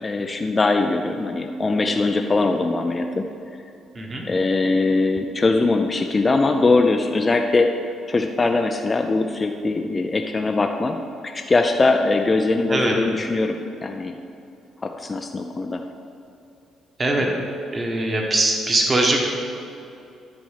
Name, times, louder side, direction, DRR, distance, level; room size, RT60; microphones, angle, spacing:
voice 1, 0.0-3.3 4.3-7.7 8.1-11.0 11.2-13.6 13.8-14.2 14.8-15.8 17.2-17.5, left 3 dB, 20° left, 4 dB, 0.4 m, -21 dB
voice 2, 3.9-4.3 12.7-12.9 17.0-17.3 17.7-19.2, right 2 dB, 25° right, 1 dB, 1.3 m, -21 dB
10.5 x 4.2 x 7.4 m, 2.6 s
cardioid pair, 130°, 0 cm